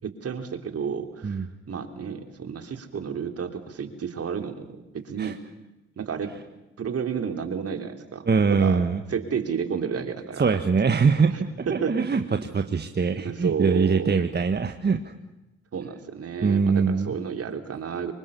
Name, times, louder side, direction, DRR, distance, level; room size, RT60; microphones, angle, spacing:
voice 1, 0.0-5.4 6.0-6.3 6.8-8.8 9.1-10.6 11.3-12.5 13.2-14.2 15.7-18.1, right 6 dB, 55° right, 6 dB, 3.3 m, -31 dB
voice 2, 8.2-9.0 10.4-12.2 12.5-15.1 16.4-17.1, right 5 dB, 35° right, 7 dB, 1.6 m, -23 dB
26.0 x 23.5 x 7.0 m, 1.0 s
hypercardioid pair, 50°, 29 cm